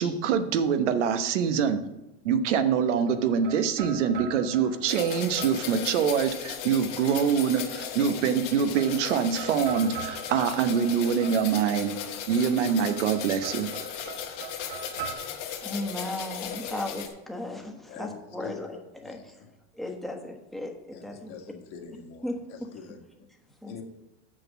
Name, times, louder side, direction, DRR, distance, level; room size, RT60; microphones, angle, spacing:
voice 1, 0.0-1.8 2.2-11.9 12.3-13.7, right 7 dB, 90° right, 8 dB, 1.1 m, -25 dB
sound 1, 3.1-6.6 7.8-8.4 8.7-11.9 12.8-15.1, right 5 dB, 55° right, 1.9 m, -42 dB
sound 2, 4.9-17.1, left 9 dB, 80° left, 1.9 m, -37 dB
voice 2, 15.6-19.4 19.7-21.3 22.2-22.7 23.6-23.7, left 1 dB, ahead, 1 dB, 1.2 m, -36 dB
voice 3, 17.9-19.2 20.9-22.3 22.7-23.0 23.6-23.8, left 5 dB, 50° left, 2 dB, 1.9 m, -44 dB
6.4 x 6.2 x 7.3 m, 0.97 s
supercardioid pair, 145°, 35 cm